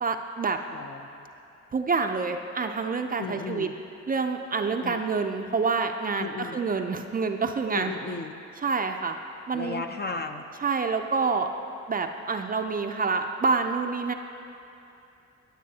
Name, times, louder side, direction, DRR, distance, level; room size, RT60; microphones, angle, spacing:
voice 1, 0.0-0.6 1.7-3.7 4.1-7.9 8.6-9.2 9.5-9.8 10.6-11.5 11.9-14.1, right 4 dB, 30° right, 5 dB, 0.5 m, -27 dB
voice 2, 0.7-1.3 3.2-3.7 4.8-5.0 6.2-6.6 7.7-8.3 9.5-10.4, left 4 dB, 35° left, 5 dB, 0.6 m, -35 dB
17.0 x 7.5 x 2.8 m, 2.8 s
cardioid pair, 85°, 30 cm